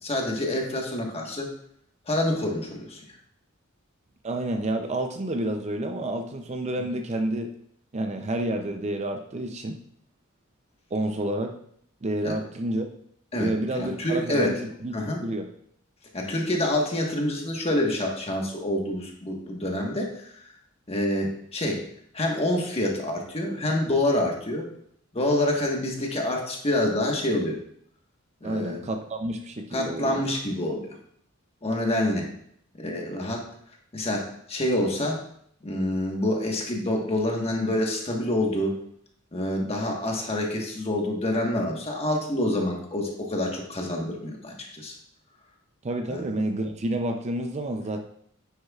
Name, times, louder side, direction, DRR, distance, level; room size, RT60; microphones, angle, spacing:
voice 1, 0.0-1.5 2.1-3.0 12.2-12.3 13.3-14.5 14.9-15.2 16.1-20.3 20.9-21.8 22.1-24.7 25.1-27.6 28.4-28.8 29.7-30.9 31.6-32.3 32.8-33.4 33.9-35.2 35.6-38.8 39.3-44.9 46.1-46.3, left 1 dB, 30° left, 0 dB, 1.4 m, -27 dB
voice 2, 4.2-7.5 7.9-9.8 10.9-11.5 12.0-12.9 13.4-14.9 15.2-15.5 28.4-30.2 45.8-48.0, right 1 dB, 30° right, 5 dB, 0.5 m, -29 dB
9.8 x 6.4 x 2.4 m, 0.67 s
head